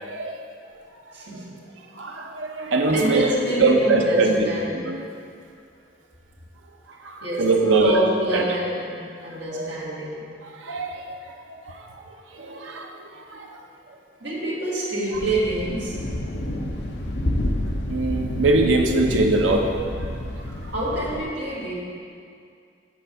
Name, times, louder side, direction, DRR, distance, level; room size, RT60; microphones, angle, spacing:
voice 1, 0.0-0.4 2.0-3.3 3.6-4.4 4.7-5.0 7.0-8.0 8.3-8.4 9.5-9.7 10.6-11.1 11.7-11.8 12.4-13.5 17.9-19.7, right 3 dB, 85° right, 3 dB, 0.8 m, -22 dB
voice 2, 1.1-1.5 2.6-4.9 7.2-8.9 9.2-10.3 14.2-16.0 20.7-21.7, right 1 dB, 65° right, -7 dB, 2.1 m, -26 dB
Thunder, 15.1-21.2, left 1 dB, 60° left, 0.7 m, -29 dB
8.3 x 4.5 x 6.7 m, 2.3 s
head